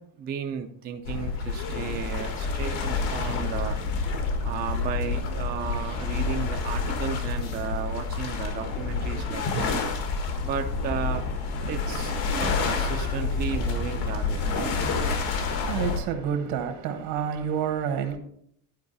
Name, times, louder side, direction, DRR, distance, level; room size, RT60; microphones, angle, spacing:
voice 1, 0.0-3.8 4.4-9.8 10.4-11.2 11.7-12.1 12.4-14.7, right 7 dB, 25° right, 0.4 m, -34 dB
sound 1, 1.0-16.0, left 4 dB, 80° left, 1.6 m, -28 dB
voice 2, 15.0-18.2, right 7 dB, 75° right, 1.5 m, -29 dB
11.0 x 4.8 x 4.0 m
cardioid pair, 165°, 38 cm